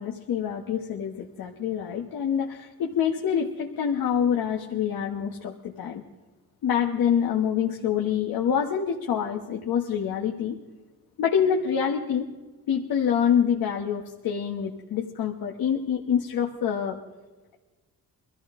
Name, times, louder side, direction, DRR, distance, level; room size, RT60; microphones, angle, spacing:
voice 1, 0.0-6.0 6.6-10.6 11.2-12.3 12.7-17.0, left 8 dB, 75° left, 1 dB, 1.3 m, -26 dB
23.5 x 14.5 x 3.7 m, 1.3 s
cardioid pair, 105°, 36 cm